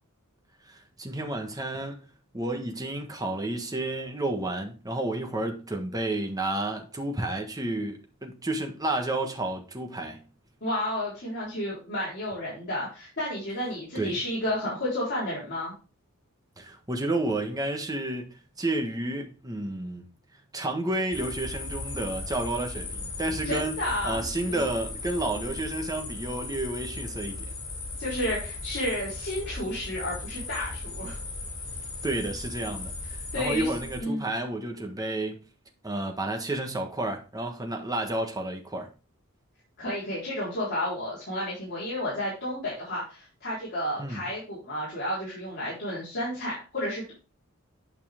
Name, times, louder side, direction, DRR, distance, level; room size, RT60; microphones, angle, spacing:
voice 1, 0.7-2.0 2.3-10.2 13.9-14.2 16.6-18.3 18.6-20.0 20.5-23.8 24.0-27.4 32.0-35.4 35.8-38.9 44.0-44.2, right 2 dB, 15° right, 1.3 m, -31 dB
voice 2, 10.6-15.7 23.4-24.7 28.0-31.2 33.3-33.7 34.0-34.3 39.8-47.1, left 1 dB, 50° left, 3.9 m, -31 dB
sound 1, 21.1-34.0, left 3 dB, 65° left, 4.6 m, -37 dB
8.9 x 5.6 x 3.6 m
head